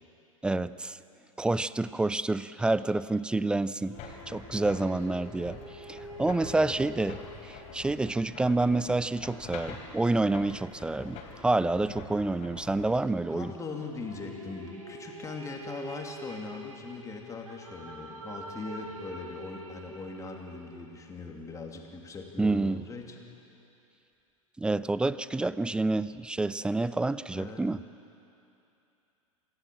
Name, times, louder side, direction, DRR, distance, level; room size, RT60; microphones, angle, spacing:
voice 1, 0.4-1.0 1.4-4.0 4.3-7.2 7.4-13.5 22.4-22.8 24.6-27.8, right 2 dB, 5° right, 17 dB, 0.4 m, -28 dB
sound 1, 3.9-13.1, left 5 dB, 40° left, 3.8 m, -46 dB
sound 2, 3.9-11.5 13.4-20.8, right 1 dB, 80° right, 3.1 m, -47 dB
voice 2, 6.5-6.9 13.3-23.2 27.3-27.6, left 4 dB, 20° left, 2 dB, 2.8 m, -40 dB
26.5 x 15.5 x 7.4 m, 2.7 s
figure-of-eight pair, 90°, 17 cm